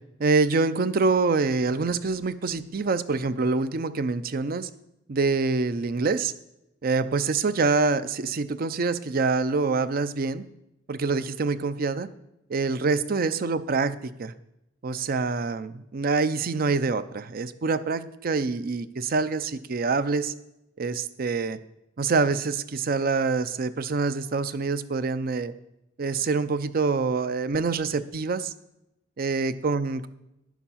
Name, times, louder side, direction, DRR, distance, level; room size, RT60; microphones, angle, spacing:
voice 1, 0.2-4.7 5.1-6.3 6.8-10.4 10.9-12.1 12.5-14.3 14.8-20.3 20.8-21.6 22.0-25.5 26.0-28.5 29.2-30.1, right 4 dB, 50° right, 13 dB, 0.5 m, -25 dB
11.0 x 7.1 x 5.7 m, 0.87 s
head